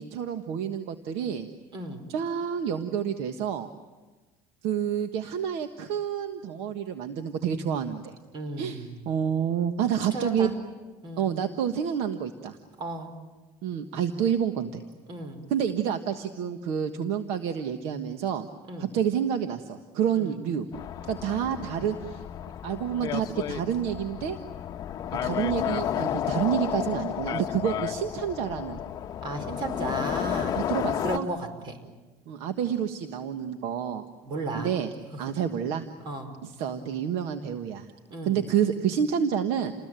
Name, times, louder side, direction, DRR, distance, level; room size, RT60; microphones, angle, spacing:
voice 1, 0.0-1.5 2.1-3.7 4.6-8.1 8.6-10.5 11.2-12.6 13.6-14.8 15.5-18.5 18.8-20.7 21.1-22.2 22.6-24.4 25.2-28.8 30.5-31.3 32.3-34.0 34.5-34.9 35.2-35.8 36.4-37.9 38.2-39.7, right 8 dB, 70° right, 8 dB, 1.5 m, -29 dB
voice 2, 1.7-2.0 8.3-8.9 10.1-10.6 11.0-11.3 12.8-13.1 15.1-15.4 18.7-18.9 20.2-20.4 29.2-30.6 31.0-31.8 34.2-34.7 35.1-35.3 36.0-36.3 38.1-38.4, right 2 dB, 50° right, 9 dB, 5.1 m, -34 dB
sound 1, 20.7-31.2, left 10 dB, 40° left, 1.0 m, -32 dB
29.5 x 20.5 x 9.1 m, 1.2 s
cardioid pair, 135°, 11 cm